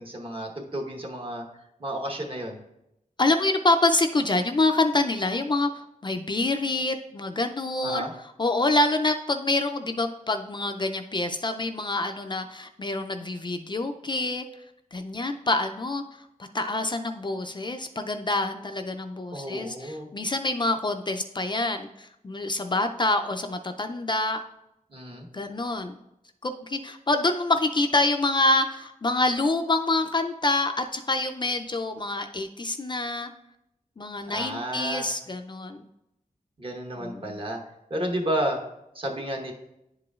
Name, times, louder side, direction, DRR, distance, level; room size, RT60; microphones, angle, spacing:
voice 1, 0.0-1.4 1.8-2.6 7.8-8.1 19.3-20.1 24.9-25.3 34.3-35.1 36.6-37.6 37.9-38.6 38.9-39.5, right 1 dB, 40° right, 1 dB, 1.0 m, -31 dB
voice 2, 3.2-5.7 6.0-8.1 8.4-14.5 14.9-16.0 16.5-24.4 25.3-26.0 26.4-33.3 34.0-35.8 37.0-37.4, left 2 dB, 35° left, 6 dB, 0.3 m, -26 dB
10.5 x 4.9 x 2.3 m, 0.86 s
wide cardioid pair, 100°, 14 cm